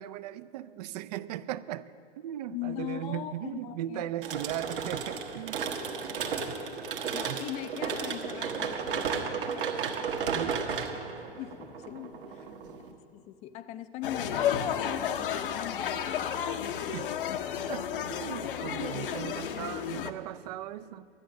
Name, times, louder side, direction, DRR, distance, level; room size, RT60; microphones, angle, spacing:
voice 1, 0.0-1.9 2.2-5.6 6.5-6.6 7.3-7.4 10.3-10.7 16.9-17.1 17.7-21.1, right 12 dB, 40° right, 16 dB, 0.4 m, -37 dB
voice 2, 2.5-4.1 6.3-9.4 11.3-12.6 13.1-16.6, left 12 dB, 20° left, 12 dB, 0.4 m, -41 dB
sound 1, 4.2-12.9, right 6 dB, 60° right, 1.5 m, -33 dB
sound 2, 14.0-20.1, left 9 dB, 55° left, 0.8 m, -32 dB
13.0 x 9.2 x 6.2 m, 2.7 s
figure-of-eight pair, 95°, 31 cm